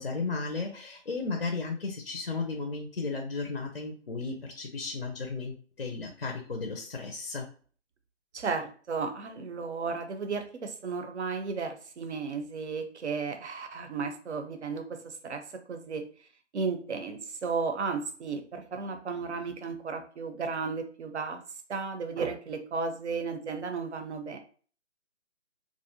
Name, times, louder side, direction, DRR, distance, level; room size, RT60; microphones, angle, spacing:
voice 1, 0.0-7.4, left 4 dB, 50° left, 2 dB, 0.4 m, -34 dB
voice 2, 8.3-16.0 16.5-21.4 21.7-24.4, right 5 dB, 65° right, 7 dB, 0.6 m, -34 dB
2.5 x 2.1 x 2.6 m, 0.42 s
hypercardioid pair, 170°, 36 cm